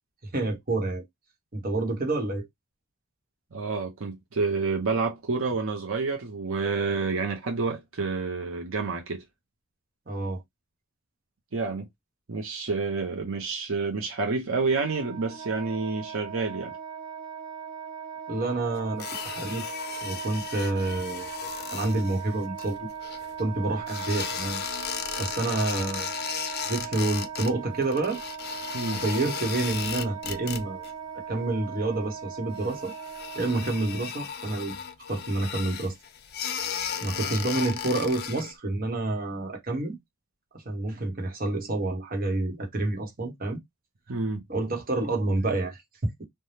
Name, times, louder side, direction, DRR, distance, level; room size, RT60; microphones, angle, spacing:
voice 1, 0.3-1.0 1.5-2.5 10.1-10.4 18.3-19.7 20.0-21.3 21.7-22.9 23.4-24.6 25.2-26.1 26.7-28.2 28.9-30.9 31.3-32.9 33.3-34.7 35.1-35.9 37.0-40.0 40.6-43.6 44.5-46.2, right 2 dB, 45° right, 1.1 m, -28 dB
voice 2, 3.5-9.2 11.5-11.9 12.3-16.8 28.7-29.0 44.1-44.4, right 4 dB, 75° right, 0.7 m, -29 dB
Wind instrument woodwind instrument, 14.6-34.1, right 7 dB, 25° right, 0.6 m, -39 dB
sound 1, 19.0-23.4 23.9-27.5 27.8-30.9 31.2-31.7 32.0-32.1 32.5-38.5, left 8 dB, 50° left, 0.5 m, -35 dB
3.3 x 2.2 x 2.7 m
head